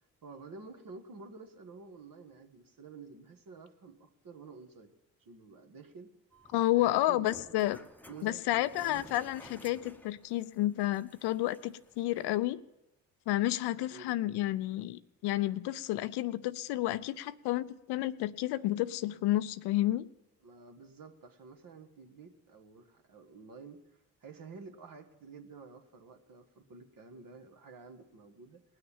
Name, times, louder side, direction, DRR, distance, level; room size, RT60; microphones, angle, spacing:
voice 1, 0.2-4.9 5.2-6.1 6.7-7.7 8.1-9.1 13.9-14.2 20.4-28.6, right 4 dB, 50° right, 5 dB, 1.6 m, -51 dB
sound 1, 6.3-12.3, left 1 dB, 5° left, 1.0 m, -55 dB
voice 2, 6.5-7.8 8.2-12.6 13.3-20.1, left 15 dB, 70° left, 15 dB, 0.6 m, -31 dB
19.5 x 6.5 x 7.2 m, 0.92 s
hypercardioid pair, 55°, 42 cm